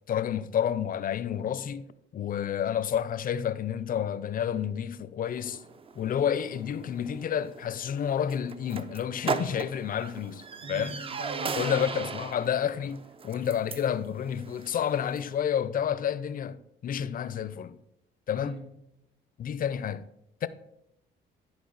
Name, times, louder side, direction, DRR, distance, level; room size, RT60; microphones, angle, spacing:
voice 1, 0.1-1.8 2.1-5.6 6.0-11.0 11.6-17.8 18.3-18.6 19.4-20.1 20.4-20.5, left 9 dB, 45° left, 0.4 m, -30 dB
sound 1, 5.3-15.3, right 5 dB, 30° right, 0.4 m, -38 dB
voice 2, 10.6-12.0 18.4-18.7, right 3 dB, 70° right, 1.6 m, -40 dB
10.5 x 4.6 x 3.9 m
cardioid pair, 90°, 20 cm